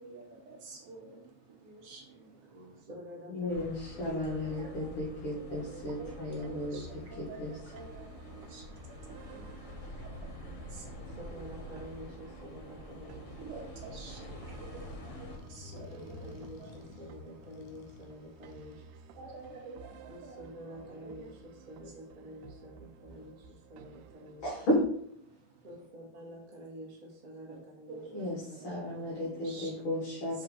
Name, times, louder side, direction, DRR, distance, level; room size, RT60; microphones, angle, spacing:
voice 1, 0.0-2.8 4.0-4.9 5.3-11.4 13.4-16.7 19.2-20.5 21.0-21.3 23.1-23.3 23.8-23.9 25.2-25.7 27.5-27.6 27.9-29.9 30.3-30.4, right 4 dB, 60° right, 1.6 m, -49 dB
voice 2, 2.3-5.0 6.0-7.2 8.3-8.5 8.9-9.6 10.8-13.5 14.1-14.4 15.6-18.8 20.1-24.4 25.6-28.1 28.4-29.6, equal, 30° right, 0.7 m, -49 dB
voice 3, 3.3-6.8 7.2-7.7 24.4-24.8 28.1-30.4, left 1 dB, 45° left, 2.1 m, -34 dB
sound 1, 3.5-15.4, left 1 dB, 65° left, 2.6 m, -47 dB
sound 2, 5.9-24.8, right 5 dB, 85° right, 2.0 m, -53 dB
Motorcycle, 13.0-19.7, left 4 dB, 80° left, 2.5 m, -53 dB
5.8 x 4.3 x 5.4 m
omnidirectional pair, 3.7 m